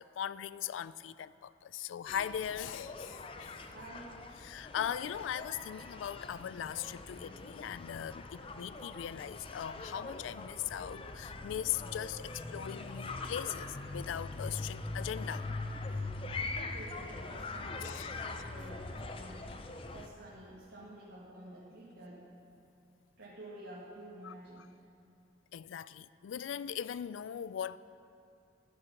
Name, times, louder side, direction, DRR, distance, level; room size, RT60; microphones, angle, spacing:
voice 1, 0.0-3.6 4.4-15.5 17.8-18.4 24.2-24.7 25.5-27.8, left 9 dB, 85° left, 0.3 m, -40 dB
sound 1, 2.1-20.1, left 3 dB, 30° left, 0.5 m, -42 dB
voice 2, 3.7-4.1 16.5-19.4 19.9-22.2 23.2-24.6, right 1 dB, 75° right, 1.9 m, -50 dB
14.0 x 6.9 x 5.7 m
head